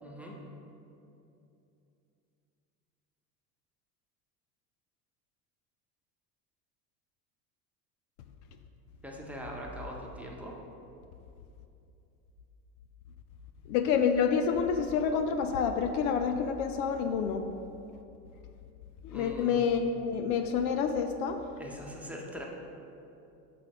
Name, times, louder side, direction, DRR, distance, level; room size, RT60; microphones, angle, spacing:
voice 1, 0.0-0.4 9.0-10.5 19.1-19.6 21.6-22.5, equal, 5° right, -2 dB, 1.0 m, -42 dB
voice 2, 13.7-17.4 19.0-21.4, left 6 dB, 60° left, 7 dB, 0.6 m, -28 dB
8.3 x 6.1 x 3.1 m, 2.7 s
hypercardioid pair, 80°, 49 cm